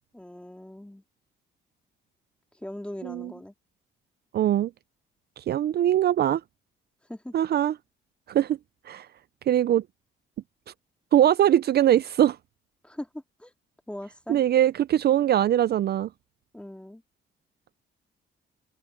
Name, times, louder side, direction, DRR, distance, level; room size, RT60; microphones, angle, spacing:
voice 1, 0.1-1.0 2.6-3.5 7.1-7.3 12.8-13.5 13.9-14.4 16.5-17.0, left 1 dB, 5° left, 3.5 m, -40 dB
voice 2, 4.3-4.7 5.4-6.4 7.3-7.7 8.3-8.6 8.9-9.1 9.5-9.8 11.1-12.4 14.3-16.1, right 11 dB, 55° right, 0.5 m, -22 dB
cardioid pair, 90°, 20 cm